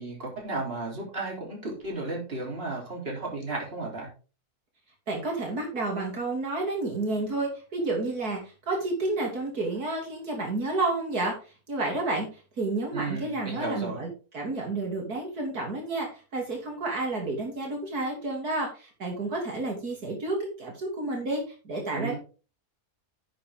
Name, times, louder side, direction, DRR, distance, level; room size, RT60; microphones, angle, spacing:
voice 1, 0.0-4.1 12.9-14.0 21.9-22.2, right 3 dB, 40° right, -1 dB, 3.9 m, -34 dB
voice 2, 5.1-11.3 11.7-12.3 12.6-22.2, right 2 dB, 80° right, 0 dB, 3.4 m, -30 dB
10.5 x 7.8 x 3.7 m, 0.34 s
omnidirectional pair, 1.6 m